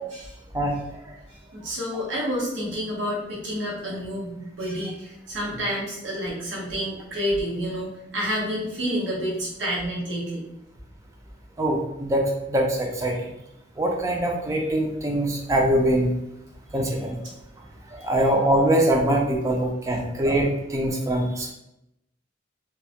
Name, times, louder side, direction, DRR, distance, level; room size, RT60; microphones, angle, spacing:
voice 1, 1.5-10.4 18.0-18.2 19.9-20.0, equal, 85° right, -4 dB, 0.8 m, -29 dB
voice 2, 11.6-12.2 12.5-13.2 13.8-16.1 16.7-17.2 17.9-21.5, right 1 dB, 15° right, 0 dB, 0.3 m, -23 dB
2.2 x 2.0 x 2.8 m, 0.84 s
head